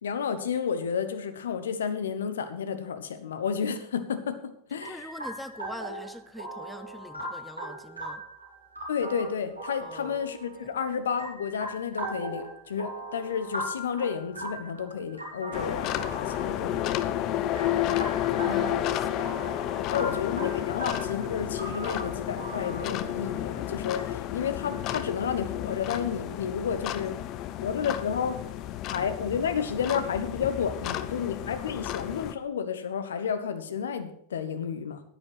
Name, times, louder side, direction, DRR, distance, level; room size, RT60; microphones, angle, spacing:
voice 1, 0.0-5.0 8.9-16.9 18.5-18.7 19.9-27.1 27.6-28.4 28.9-35.0, left 7 dB, 65° left, 10 dB, 1.1 m, -31 dB
voice 2, 4.8-8.2 9.8-10.2 10.6-10.8 17.3-19.4 19.7-20.2, equal, ahead, 11 dB, 0.7 m, -44 dB
sound 1, 4.8-24.0, right 1 dB, 90° right, 3.9 m, -40 dB
sound 2, 15.5-32.3, left 12 dB, 40° left, 0.7 m, -31 dB
9.9 x 9.8 x 5.8 m, 0.70 s
figure-of-eight pair, 90°, 0 cm